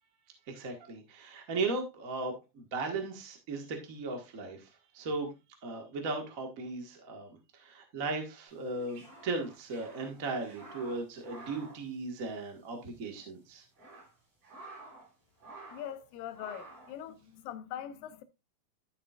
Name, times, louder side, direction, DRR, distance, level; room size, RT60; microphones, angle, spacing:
voice 1, 0.5-4.7 4.9-5.3 5.6-13.6, right 3 dB, 40° right, 1.3 m, -37 dB
sound 1, 8.6-12.7 12.9-13.0 13.5-15.1 15.4-16.0 16.3-17.0, right 2 dB, 65° right, 8.1 m, -51 dB
voice 2, 15.7-18.2, left 10 dB, 90° left, 2.7 m, -42 dB
12.0 x 7.3 x 2.4 m
omnidirectional pair, 3.9 m